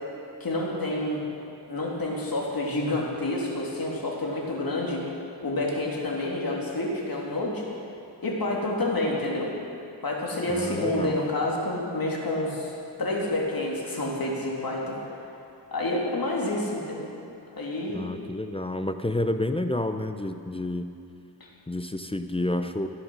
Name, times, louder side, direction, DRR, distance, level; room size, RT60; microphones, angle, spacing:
voice 1, 0.4-1.2 1.7-5.1 5.4-7.7 8.2-9.6 10.0-12.7 13.0-15.0 15.7-17.1 17.6-18.1 21.4-21.5, left 2 dB, 55° left, -3 dB, 2.8 m, -28 dB
voice 2, 10.5-11.2 17.9-20.9 21.7-22.9, left 1 dB, 15° left, 8 dB, 0.6 m, -29 dB
14.5 x 10.5 x 6.3 m, 2.6 s
wide cardioid pair, 90°, 43 cm